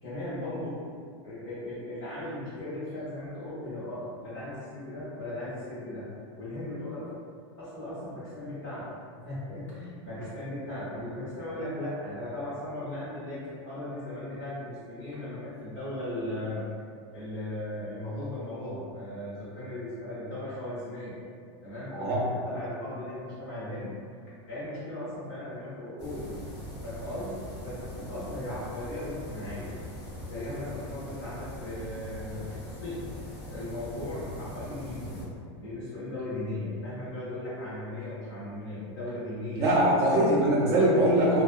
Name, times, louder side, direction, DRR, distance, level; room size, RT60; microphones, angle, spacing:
voice 1, 0.0-0.8 1.2-6.1 6.4-7.2 7.6-8.9 9.2-16.7 17.1-21.2 21.6-24.0 24.5-26.3 26.8-29.7 30.3-33.1 33.5-35.3 35.6-39.7 40.0-40.1, left 1 dB, 35° left, -11 dB, 1.2 m, -37 dB
sound 1, 26.0-35.2, left 1 dB, 55° left, 0.9 m, -41 dB
voice 2, 39.5-41.4, right 1 dB, 20° right, -6 dB, 0.4 m, -22 dB
2.8 x 2.0 x 2.3 m, 2.2 s
supercardioid pair, 175°, 15 cm